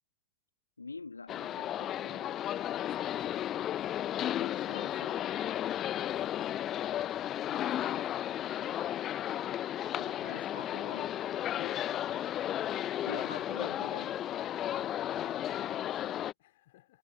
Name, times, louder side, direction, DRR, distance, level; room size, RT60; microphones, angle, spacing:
voice 1, 0.8-2.3 4.3-5.3 9.9-11.2 13.0-14.2, left 4 dB, 80° left, 2.8 m, -46 dB
sound 1, 1.3-16.3, left 11 dB, 30° left, 1.0 m, -34 dB
voice 2, 2.6-3.9 4.3-4.6 7.4-8.1 11.5-11.9 15.2-17.0, left 16 dB, 55° left, 3.4 m, -54 dB
figure-of-eight pair, 90°, 0 cm